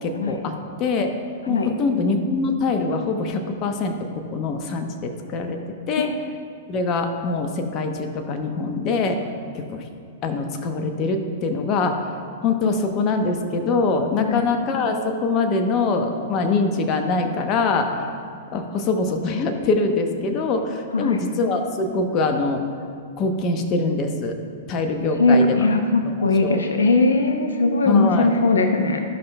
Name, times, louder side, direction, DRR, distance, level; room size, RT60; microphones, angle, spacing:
voice 1, 0.0-1.1 1.5-5.6 5.9-6.1 6.7-9.2 9.5-9.9 10.2-12.1 12.4-18.0 18.5-22.6 23.2-24.4 24.7-25.6 26.1-26.2 26.4-26.6 27.9-28.3, left 3 dB, 35° left, 5 dB, 0.8 m, -23 dB
voice 2, 20.9-21.3 25.0-29.0, left 3 dB, 85° left, 5 dB, 0.6 m, -20 dB
13.0 x 5.6 x 2.2 m, 2.4 s
hypercardioid pair, 115°, 0 cm